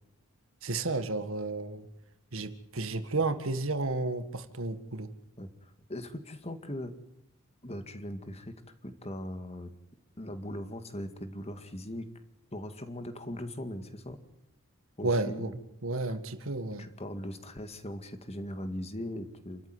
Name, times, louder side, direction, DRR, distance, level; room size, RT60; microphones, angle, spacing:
voice 1, 0.6-1.9 2.3-5.1 15.0-15.5 15.8-16.9, right 3 dB, 65° right, 11 dB, 1.8 m, -32 dB
voice 2, 5.4-6.9 7.6-8.5 8.8-9.7 10.2-12.1 12.5-14.2 15.0-15.5 16.8-19.6, left 1 dB, 30° left, 9 dB, 2.1 m, -39 dB
28.5 x 13.5 x 9.6 m, 0.81 s
head